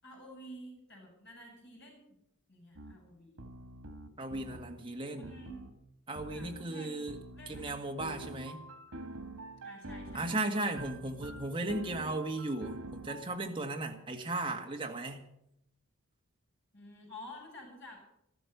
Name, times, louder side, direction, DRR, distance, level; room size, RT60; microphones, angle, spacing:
voice 1, 0.0-2.0 2.5-3.4 5.2-5.7 6.3-7.1 7.3-7.8 9.6-10.8 16.7-18.1, left 1 dB, 55° left, 0 dB, 7.1 m, -50 dB
sound 1, 2.7-2.9 3.4-4.8 5.2-5.7 6.1-6.6 7.1-13.3, right 1 dB, 90° right, 1.7 m, -46 dB
voice 2, 4.2-5.3 6.1-7.2 7.5-8.6 10.1-15.3, right 2 dB, 25° right, 2 dB, 1.7 m, -36 dB
13.5 x 13.5 x 6.8 m, 0.78 s
head